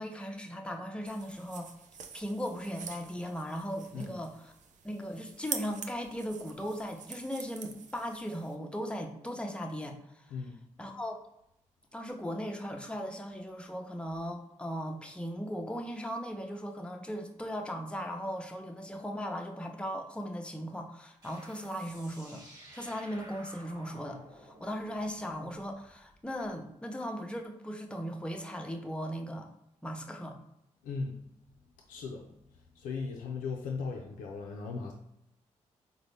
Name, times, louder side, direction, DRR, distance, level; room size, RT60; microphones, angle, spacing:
voice 1, 0.0-1.7 2.1-4.5 4.8-10.3 10.8-11.2 11.9-22.4 22.7-29.5 29.8-30.4, equal, 10° left, 2 dB, 0.6 m, -38 dB
sound 1, 1.1-8.6, right 7 dB, 65° right, 0.4 m, -45 dB
sound 2, 21.2-26.5, right 1 dB, 30° right, 1.3 m, -53 dB
voice 2, 30.8-31.2 31.9-32.3 32.8-34.9, left 4 dB, 85° left, 0 dB, 0.4 m, -37 dB
3.9 x 2.0 x 3.3 m, 0.79 s
supercardioid pair, 45°, 14 cm